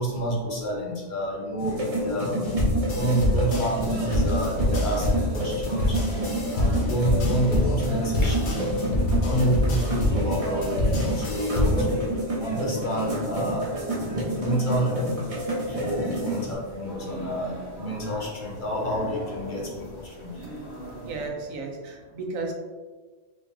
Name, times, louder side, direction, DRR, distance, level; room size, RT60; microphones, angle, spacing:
voice 1, 0.0-2.4 2.9-5.1 5.3-6.0 6.5-8.7 9.2-12.0 12.4-13.7 14.3-15.0 15.8-20.3, right 1 dB, 45° left, -2 dB, 0.8 m, -29 dB
sound 1, 1.6-16.5, right 1 dB, 30° right, 0.8 m, -29 dB
sound 2, 2.4-11.9, left 1 dB, 65° left, 1.3 m, -25 dB
sound 3, 3.6-21.3, right 1 dB, 20° left, 1.3 m, -41 dB
voice 2, 21.1-22.5, right 3 dB, 90° right, 2 dB, 1.2 m, -33 dB
5.0 x 3.5 x 2.7 m, 1.4 s
omnidirectional pair, 1.4 m